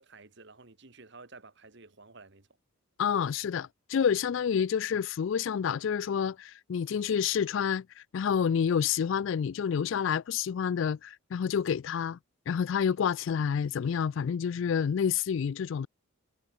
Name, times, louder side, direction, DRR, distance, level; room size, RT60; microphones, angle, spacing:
voice 1, 0.0-2.5, right 3 dB, 55° right, 1.8 m, -52 dB
voice 2, 3.0-7.8 8.1-12.2 12.5-15.9, left 7 dB, 60° left, 0.3 m, -28 dB
head